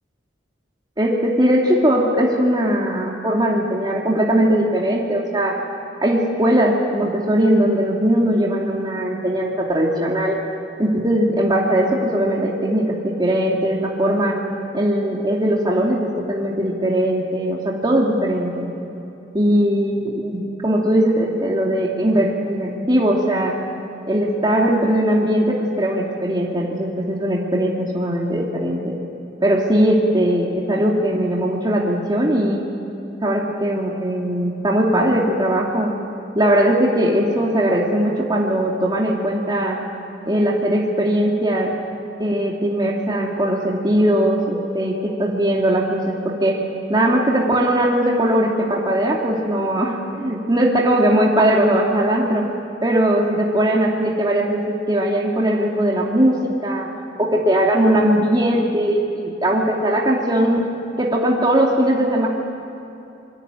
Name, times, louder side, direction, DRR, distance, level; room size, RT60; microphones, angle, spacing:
voice 1, 1.0-5.6 6.0-10.4 10.8-14.4 14.7-18.7 19.3-23.5 24.1-28.9 29.4-32.6 33.2-36.0 36.3-39.8 40.3-41.7 42.2-52.5 52.8-56.9 57.2-60.7 61.0-62.3, right 1 dB, 25° right, -3 dB, 2.7 m, -19 dB
27.0 x 23.0 x 9.1 m, 2.9 s
head